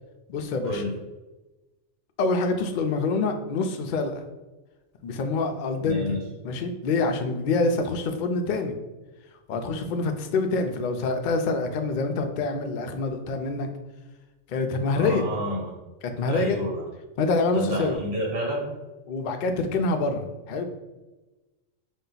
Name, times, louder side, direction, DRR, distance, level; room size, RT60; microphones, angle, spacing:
voice 1, 0.3-0.8 2.2-4.2 5.0-6.2 6.4-8.7 9.5-13.7 14.5-15.2 16.0-16.6 17.2-18.0 19.1-20.6, left 3 dB, 80° left, 6 dB, 0.4 m, -26 dB
voice 2, 5.8-6.2 14.9-15.8 16.3-16.8 17.5-18.7, equal, 80° right, -2 dB, 1.5 m, -29 dB
4.2 x 2.2 x 3.9 m, 1.1 s
omnidirectional pair, 1.4 m